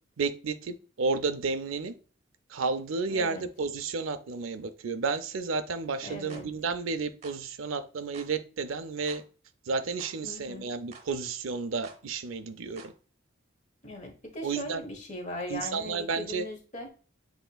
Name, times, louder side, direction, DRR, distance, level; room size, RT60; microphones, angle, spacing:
voice 1, 0.2-1.9 2.5-9.2 9.7-12.9 14.4-14.9 15.5-16.5, right 4 dB, 80° right, 0.5 m, -32 dB
voice 2, 3.1-3.4 6.0-6.4 10.2-10.7 13.8-16.9, left 1 dB, 35° left, 1.1 m, -39 dB
sound 1, 6.3-6.5 7.2-7.4 8.1-8.3 9.1-9.2 10.0-10.2 10.9-11.1 11.8-12.0 12.8-12.9, right 5 dB, 35° right, 0.9 m, -49 dB
7.8 x 2.9 x 2.3 m
head